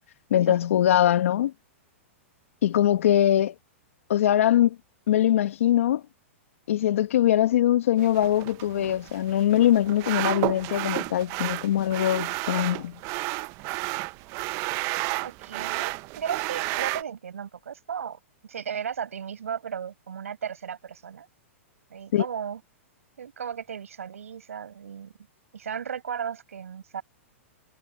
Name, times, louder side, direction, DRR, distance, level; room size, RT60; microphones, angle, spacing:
voice 1, 0.3-1.5 2.6-3.5 4.1-4.8 5.1-6.0 6.7-13.0 22.1-22.2, left 11 dB, 75° left, 1.5 m, -22 dB
sound 1, 8.0-17.0, right 24 dB, 40° right, 0.6 m, -32 dB
voice 2, 15.2-21.3 21.9-22.6 23.2-25.1 25.5-27.0, right 8 dB, 90° right, 5.5 m, -35 dB
hypercardioid pair, 125°, 7 cm